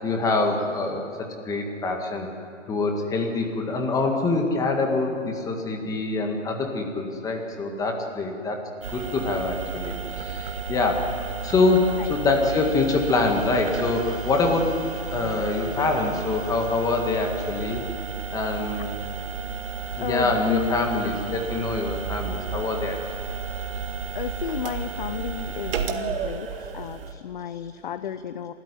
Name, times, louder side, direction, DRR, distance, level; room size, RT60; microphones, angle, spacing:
voice 1, 0.0-2.3 2.7-8.6 8.9-11.1 11.4-14.8 15.1-17.8 18.3-18.9 20.0-23.0, left 3 dB, 10° left, 3 dB, 1.8 m, -25 dB
sound 1, 8.8-27.1, right 6 dB, 45° right, 2.0 m, -32 dB
voice 2, 19.9-20.7 24.1-28.5, left 9 dB, 40° left, 12 dB, 0.7 m, -33 dB
28.5 x 13.5 x 10.0 m, 2.6 s
hypercardioid pair, 155°, 38 cm